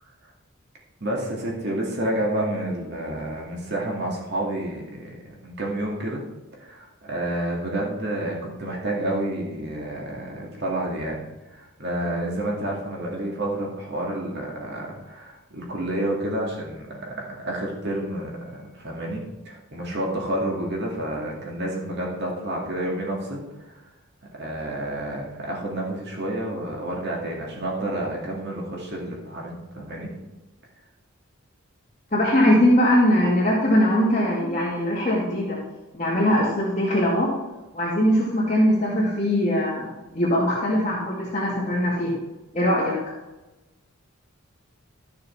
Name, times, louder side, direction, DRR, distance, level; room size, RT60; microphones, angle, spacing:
voice 1, 1.0-6.2 6.6-11.2 11.5-23.8 24.3-30.1, right 1 dB, 50° right, -2 dB, 2.1 m, -29 dB
voice 2, 32.1-35.6 35.9-37.3 37.7-42.1 42.5-43.0, equal, 35° left, -8 dB, 2.2 m, -21 dB
13.0 x 6.6 x 4.4 m, 1.1 s
head